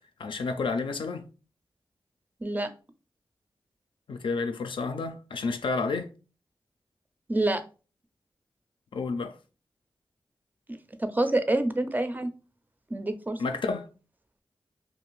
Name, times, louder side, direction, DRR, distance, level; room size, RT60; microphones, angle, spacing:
voice 1, 0.2-1.3 4.1-6.1 8.9-9.4 13.4-13.9, left 4 dB, 70° left, 0.4 m, -30 dB
voice 2, 7.3-7.6 11.0-12.3 12.9-13.4, right 2 dB, 20° right, 0.4 m, -26 dB
2.6 x 2.4 x 3.1 m
cardioid pair, 55°, 9 cm